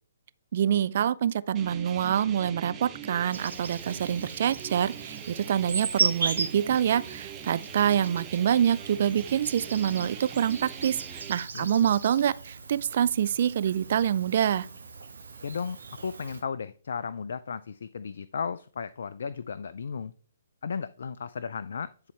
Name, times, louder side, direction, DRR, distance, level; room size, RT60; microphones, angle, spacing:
voice 1, 0.5-14.7, right 9 dB, 50° right, 0.4 m, -26 dB
sound 1, 1.5-11.3, right 9 dB, 20° right, 0.8 m, -43 dB
Insect, 3.3-16.4, right 5 dB, 75° right, 1.5 m, -37 dB
voice 2, 11.5-11.9 15.4-15.8 16.0-20.1 20.6-21.9, left 6 dB, 65° left, 0.4 m, -35 dB
10.5 x 4.1 x 3.3 m
figure-of-eight pair, 130°, 0 cm